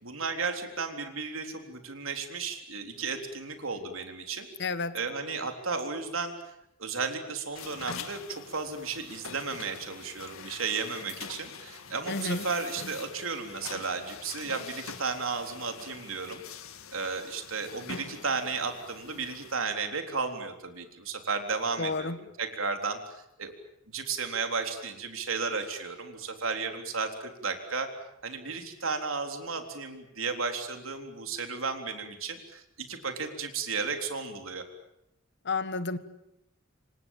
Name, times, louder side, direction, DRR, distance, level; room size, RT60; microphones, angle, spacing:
voice 1, 0.0-4.5 4.9-6.3 6.8-16.4 16.9-22.1 22.4-23.5 23.9-27.9 28.2-34.6, right 4 dB, 75° right, 5 dB, 3.7 m, -34 dB
voice 2, 4.6-5.0 12.1-12.4 21.8-22.2 35.4-36.0, left 3 dB, 55° left, 13 dB, 1.5 m, -30 dB
sound 1, 7.6-19.6, left 6 dB, 90° left, 2.0 m, -44 dB
27.5 x 25.5 x 7.4 m, 0.82 s
head